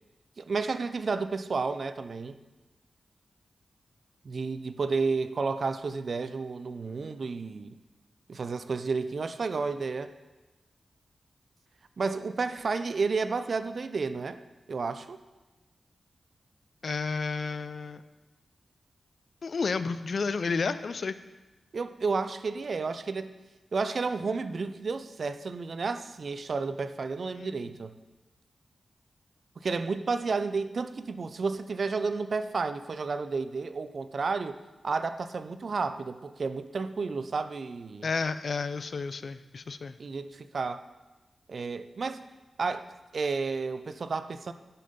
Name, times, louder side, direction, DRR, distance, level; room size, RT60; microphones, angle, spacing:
voice 1, 0.4-2.4 4.2-7.8 8.3-10.1 12.0-14.4 14.7-15.2 21.7-23.3 23.7-27.9 29.6-38.1 40.0-40.8 41.5-42.2 42.6-42.9 43.1-44.5, right 4 dB, 65° right, 11 dB, 0.5 m, -31 dB
voice 2, 16.8-18.0 19.4-21.2 27.4-27.7 38.0-40.0, left 4 dB, 65° left, 13 dB, 0.4 m, -31 dB
10.0 x 5.7 x 5.2 m, 1.1 s
cardioid pair, 60°, 0 cm